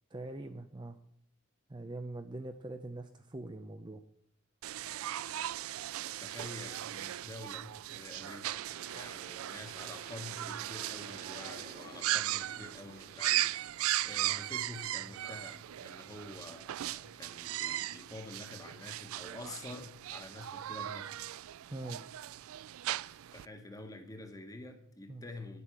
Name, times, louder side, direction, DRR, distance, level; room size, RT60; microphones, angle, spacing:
voice 1, 0.1-1.0 1.7-4.0 21.7-22.0 25.1-25.2, right 2 dB, 20° right, 7 dB, 0.5 m, -43 dB
sound 1, 4.6-23.4, right 14 dB, 80° right, 0.3 m, -38 dB
voice 2, 6.2-13.6 14.0-21.1 23.0-25.6, left 2 dB, 15° left, 6 dB, 1.4 m, -48 dB
Aircraft, 7.8-18.5, right 2 dB, 45° right, 1.8 m, -56 dB
9.9 x 8.2 x 7.4 m, 0.72 s
head